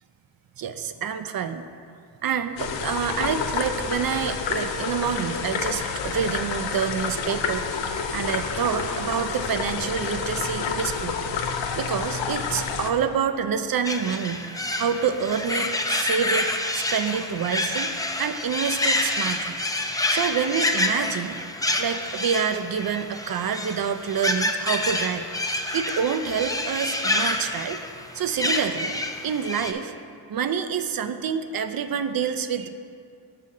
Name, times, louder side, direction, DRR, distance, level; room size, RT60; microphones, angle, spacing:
voice 1, 0.6-1.7 2.2-11.2 11.7-14.5 14.8-19.6 20.1-21.4 21.8-27.8 28.1-29.0 29.2-29.9 30.3-32.7, right 7 dB, 50° right, 9 dB, 0.5 m, -27 dB
sound 1, 2.6-12.9, left 5 dB, 75° left, 0.6 m, -29 dB
sound 2, 13.8-29.7, left 1 dB, 10° left, 0.4 m, -28 dB
6.4 x 5.6 x 3.8 m, 2.3 s
cardioid pair, 50°, 46 cm